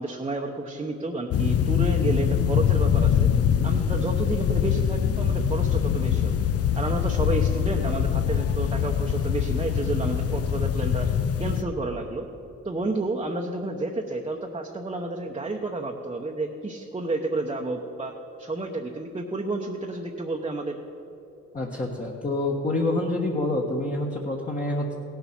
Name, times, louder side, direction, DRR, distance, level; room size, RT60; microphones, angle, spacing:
voice 1, 0.0-3.2 3.6-6.4 6.8-11.1 11.4-12.3 12.6-20.8, right 2 dB, 20° right, 0 dB, 0.9 m, -30 dB
sound 1, 1.3-11.6, left 8 dB, 50° left, 0.6 m, -23 dB
voice 2, 21.5-24.9, left 2 dB, 25° left, -2 dB, 1.4 m, -27 dB
17.0 x 7.1 x 6.0 m, 2.9 s
cardioid pair, 90°, 30 cm